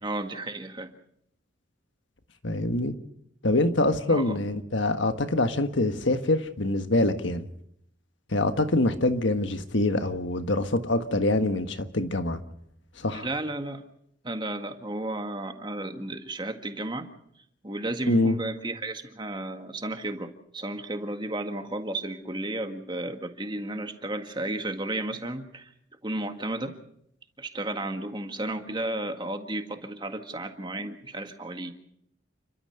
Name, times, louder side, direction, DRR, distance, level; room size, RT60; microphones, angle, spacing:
voice 1, 0.0-0.9 4.1-4.4 13.1-13.8 14.2-17.1 17.6-25.7 26.0-26.7 27.4-31.7, right 1 dB, 25° right, 6 dB, 1.8 m, -33 dB
voice 2, 2.4-2.9 3.4-7.5 8.3-12.4 13.0-13.3 18.1-18.4, left 2 dB, 70° left, 8 dB, 1.5 m, -25 dB
29.5 x 13.0 x 6.7 m, 0.71 s
head